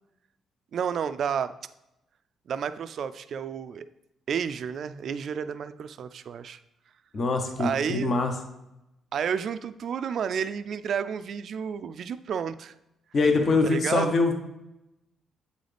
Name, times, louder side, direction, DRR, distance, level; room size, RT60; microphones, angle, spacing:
voice 1, 0.7-1.5 2.5-3.9 4.3-6.6 7.6-8.1 9.1-12.7 13.6-14.1, right 7 dB, 60° right, 12 dB, 0.3 m, -31 dB
voice 2, 7.1-8.3 13.1-14.3, left 3 dB, 45° left, 5 dB, 0.8 m, -23 dB
8.0 x 4.0 x 3.3 m, 0.90 s
cardioid pair, 90°, 0 cm